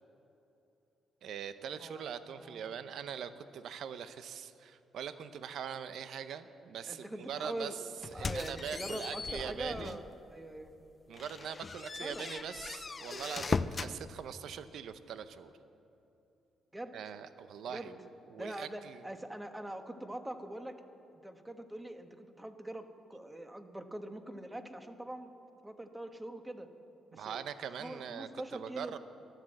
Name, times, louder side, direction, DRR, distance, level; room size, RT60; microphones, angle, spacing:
voice 1, 1.2-7.8 8.1-10.0 11.1-15.5 16.9-19.0 27.1-29.0, right 8 dB, 70° right, 12 dB, 0.7 m, -42 dB
voice 2, 1.8-2.1 2.4-2.7 6.9-7.8 8.1-10.7 12.0-12.3 16.7-16.9 17.7-17.9 18.4-20.8 21.1-25.3 25.6-26.7 27.1-27.4 27.7-28.9, right 1 dB, 10° right, 7 dB, 1.2 m, -43 dB
sound 1, 8.0-10.1 10.6-10.7 11.1-14.0, left 4 dB, 35° left, 0.5 m, -38 dB
13.5 x 11.5 x 7.7 m, 2.9 s
cardioid pair, 90°, 0 cm